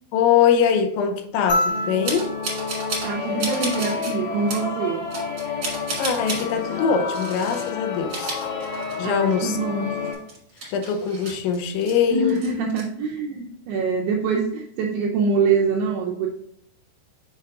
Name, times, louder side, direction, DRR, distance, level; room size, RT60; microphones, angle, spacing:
voice 1, 0.1-2.3 6.0-8.4 9.0-9.6 10.7-12.4, left 7 dB, 85° left, 3.0 m, -22 dB
sound 1, 1.5-4.0 5.7-5.8, left 1 dB, 45° left, 0.5 m, -29 dB
sound 2, 1.7-10.1, left 5 dB, 60° left, 2.5 m, -30 dB
sound 3, 2.0-3.1 3.4-4.1 4.5-4.7 5.1-6.5 7.1-7.7 8.0-9.2 9.5-9.6 10.0-11.9 12.3-12.8, right 3 dB, 45° right, 1.6 m, -32 dB
voice 2, 3.0-5.1 9.0-9.9 12.1-16.3, right 4 dB, 85° right, 2.3 m, -24 dB
7.0 x 5.8 x 2.3 m
omnidirectional pair, 5.2 m